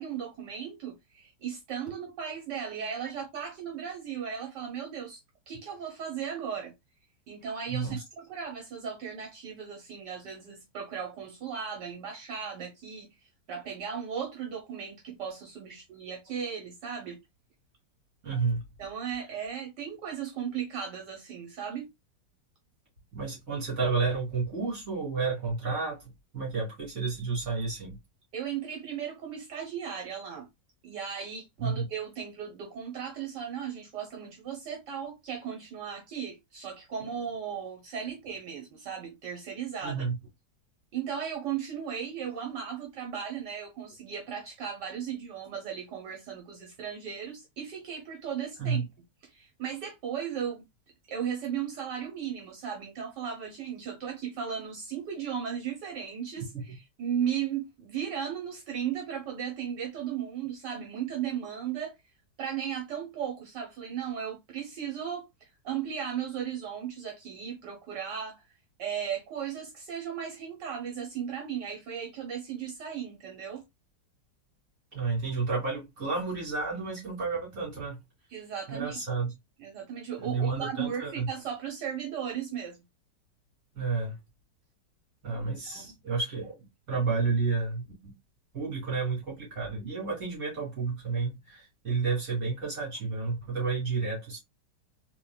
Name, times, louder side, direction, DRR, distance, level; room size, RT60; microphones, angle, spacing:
voice 1, 0.0-5.2 5.5-6.7 7.3-13.1 13.5-17.2 18.8-21.9 28.3-30.5 30.8-40.1 40.9-48.8 49.2-50.6 51.1-61.9 62.4-68.5 68.8-73.6 78.3-79.0 79.6-82.8 85.3-85.9, right 8 dB, 70° right, 1.7 m, -36 dB
voice 2, 7.7-8.0 18.2-18.6 23.1-26.0 26.3-28.0 31.6-31.8 39.8-40.2 48.6-48.9 56.5-56.8 74.9-78.0 78.7-79.3 80.2-81.3 83.7-84.2 85.2-86.6 86.9-88.1 88.5-94.4, right 4 dB, 50° right, 2.9 m, -31 dB
4.0 x 3.3 x 2.4 m
omnidirectional pair, 1.9 m